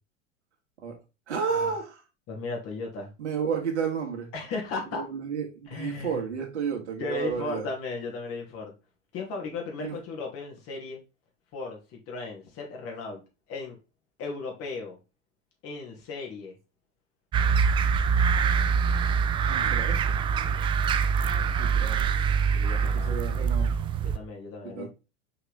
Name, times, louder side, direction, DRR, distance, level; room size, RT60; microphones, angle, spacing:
voice 1, 1.3-2.0 3.2-4.3 4.9-7.7 9.8-10.0 19.4-20.2 21.6-22.1 22.8-23.8 24.6-24.9, right 6 dB, 70° right, 2.0 m, -32 dB
voice 2, 2.3-3.1 4.3-5.1 5.7-6.2 7.0-8.7 9.1-11.0 11.5-13.2 13.5-13.8 14.2-15.0 15.6-16.5 17.7-18.0 19.6-19.9 21.4-21.7 22.1-22.3 22.5-23.2 24.0-24.9, left 3 dB, 40° left, 2.6 m, -36 dB
sound 1, 17.3-24.2, right 6 dB, 15° right, 0.3 m, -24 dB
5.4 x 4.8 x 3.6 m
figure-of-eight pair, 85°, 35 cm